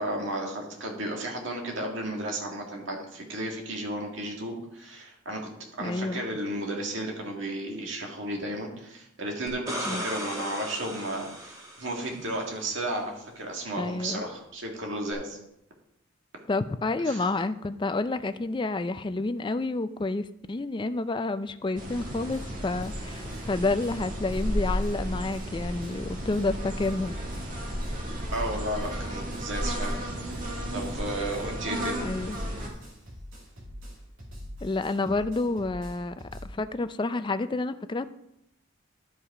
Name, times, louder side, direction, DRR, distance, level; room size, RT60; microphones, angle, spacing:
voice 1, 0.0-15.4 17.0-17.2 28.3-30.4 30.7-32.1, right 1 dB, 65° right, 0 dB, 2.0 m, -33 dB
voice 2, 5.8-6.3 9.9-10.0 13.8-14.2 16.5-27.5 32.0-32.4 34.6-36.1 36.4-38.1, left 2 dB, 25° left, 11 dB, 0.4 m, -29 dB
sound 1, 9.5-12.3 15.1-15.2, equal, 15° right, 1.9 m, -36 dB
sound 2, 21.8-32.7, equal, 40° right, 1.9 m, -33 dB
sound 3, 22.3-22.4 22.8-23.5 23.8-23.9 24.3-25.5 25.8-25.9 26.2-27.5 27.8-29.5 29.8-29.9 30.2-31.5 31.8-36.4, equal, 80° right, 2.5 m, -44 dB
11.5 x 5.5 x 4.8 m, 0.81 s
head